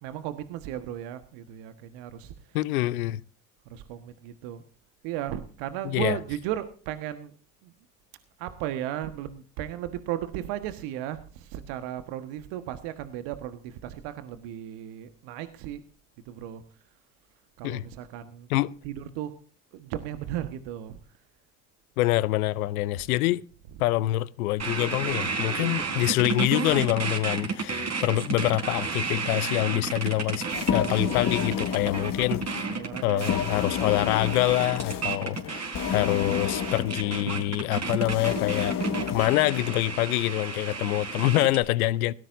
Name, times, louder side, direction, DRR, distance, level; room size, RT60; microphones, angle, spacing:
voice 1, 0.0-2.6 3.6-4.6 5.0-7.3 7.6-7.7 8.4-15.8 16.2-16.6 17.6-18.5 18.8-19.3 19.7-21.0 25.6-25.8 32.8-33.3, right 12 dB, 70° right, 1.5 m, -35 dB
voice 2, 2.5-3.2 5.8-6.2 17.6-17.8 18.5-18.7 22.0-23.4 23.8-32.4 33.0-38.8 39.1-42.1, left 16 dB, 80° left, 0.8 m, -26 dB
sound 1, 24.6-41.6, right 5 dB, 40° right, 4.3 m, -32 dB
sound 2, 30.5-40.0, left 8 dB, 50° left, 2.3 m, -31 dB
17.5 x 17.0 x 2.6 m
hypercardioid pair, 60°, 42 cm